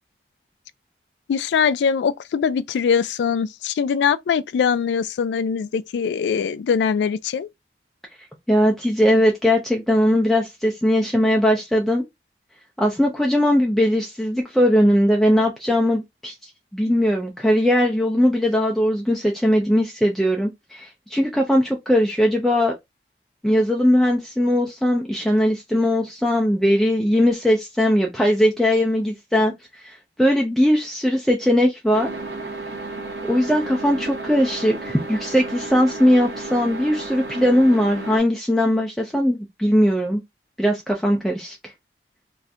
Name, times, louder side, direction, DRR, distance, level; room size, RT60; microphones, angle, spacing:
voice 1, 1.3-7.5, left 6 dB, 85° left, 0.3 m, -22 dB
voice 2, 8.5-12.0 12.8-22.7 23.4-32.1 33.3-40.2 40.6-41.6, equal, ahead, 0.3 m, -19 dB
sound 1, 31.9-38.2, right 2 dB, 70° right, 0.8 m, -33 dB
2.6 x 2.4 x 3.3 m
head